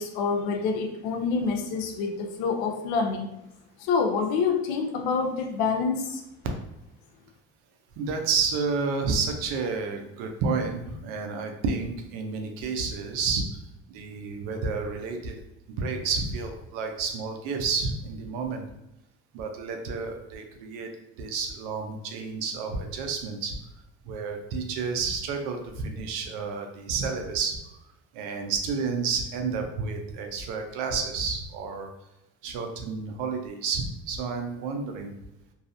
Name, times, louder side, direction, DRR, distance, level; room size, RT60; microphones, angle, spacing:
voice 1, 0.0-3.3 3.8-6.2, left 5 dB, 85° left, 4 dB, 0.6 m, -27 dB
voice 2, 8.0-13.5 13.9-15.3 15.8-18.6 19.3-20.9 21.2-23.6 24.1-27.6 28.1-31.9 32.4-35.2, right 4 dB, 80° right, 4 dB, 0.6 m, -30 dB
2.6 x 2.4 x 2.5 m, 0.89 s
supercardioid pair, 90°, 31 cm